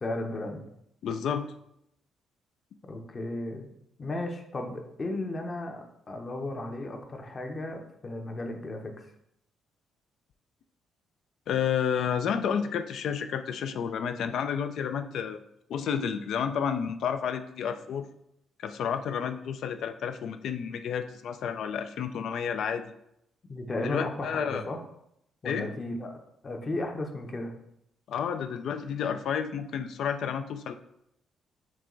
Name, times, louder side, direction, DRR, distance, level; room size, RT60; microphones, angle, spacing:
voice 1, 0.0-0.6 2.8-3.7 4.0-8.9 23.5-24.8 25.4-26.2 26.4-27.5, left 2 dB, 35° left, 3 dB, 0.8 m, -34 dB
voice 2, 1.0-1.5 11.5-15.4 15.7-18.1 18.6-22.9 23.8-24.6 25.4-25.7 28.1-30.7, left 7 dB, 70° left, 9 dB, 0.4 m, -30 dB
6.1 x 2.3 x 3.8 m, 0.78 s
cardioid pair, 90°, 0 cm